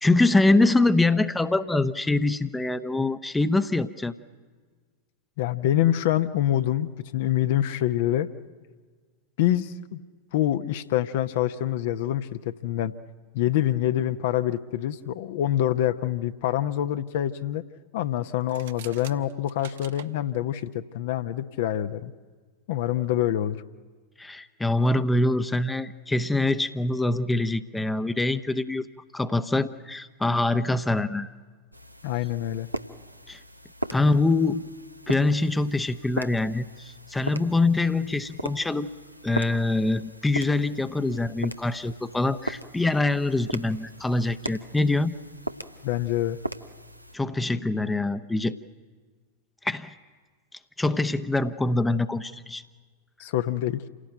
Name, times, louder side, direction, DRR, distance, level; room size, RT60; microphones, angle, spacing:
voice 1, 0.0-4.1 24.2-28.9 29.1-31.3 33.3-33.4 33.9-34.6 35.1-38.9 39.2-45.1 47.1-48.6 49.6-49.9 50.8-52.6, left 2 dB, 10° left, 12 dB, 0.8 m, -24 dB
voice 2, 5.4-8.3 9.4-10.0 10.3-12.9 13.3-17.6 17.9-22.1 22.7-23.6 32.0-32.7 45.8-46.4 53.2-53.8, left 12 dB, 55° left, 10 dB, 0.9 m, -26 dB
sound 1, 18.4-20.1, right 11 dB, 60° right, 1.0 m, -45 dB
sound 2, 31.7-47.2, right 1 dB, 90° right, 0.9 m, -39 dB
28.0 x 17.5 x 9.2 m, 1.5 s
figure-of-eight pair, 90°, 0 cm